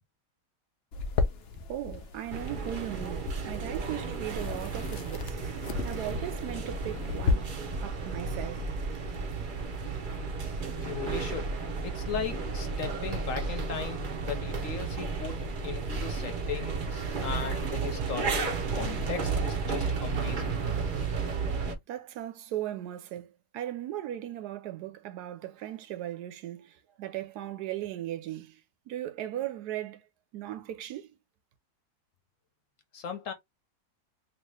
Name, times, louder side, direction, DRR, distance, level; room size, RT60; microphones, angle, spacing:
sound 1, 0.9-7.3, left 4 dB, 90° left, 0.5 m, -34 dB
voice 1, 1.7-5.3 5.8-7.5 7.8-8.6 21.9-28.6 28.9-30.0 30.3-31.1, right 12 dB, 80° right, 1.1 m, -37 dB
sound 2, 2.3-21.8, right 4 dB, 50° right, 0.6 m, -33 dB
voice 2, 10.8-11.5 11.8-20.5 32.9-33.3, left 7 dB, 65° left, 1.0 m, -37 dB
2.9 x 2.8 x 3.2 m
omnidirectional pair, 1.8 m